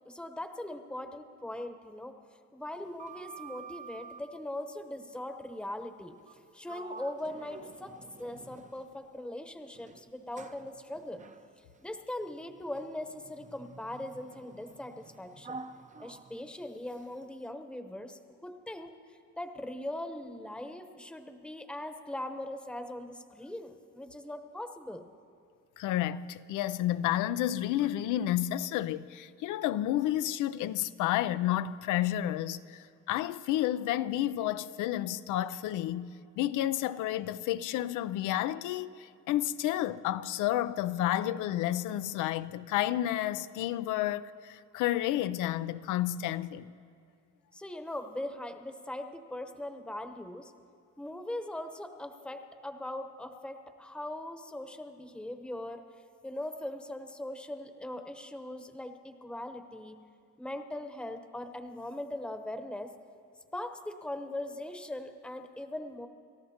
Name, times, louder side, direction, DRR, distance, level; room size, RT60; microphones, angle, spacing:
voice 1, 0.0-2.1 2.5-6.2 6.5-11.2 11.8-15.6 16.0-18.9 19.4-25.0 47.5-50.5 51.0-55.8 56.2-60.0 60.4-62.9 63.5-66.1, left 1 dB, 5° left, 0.9 m, -40 dB
Sliding door, 2.7-4.3 6.2-6.4 6.7-9.1 9.7-17.2, right 4 dB, 25° right, 0.6 m, -49 dB
voice 2, 25.8-46.7, left 13 dB, 90° left, 0.5 m, -31 dB
30.0 x 13.5 x 2.9 m
cardioid pair, 90°, 30 cm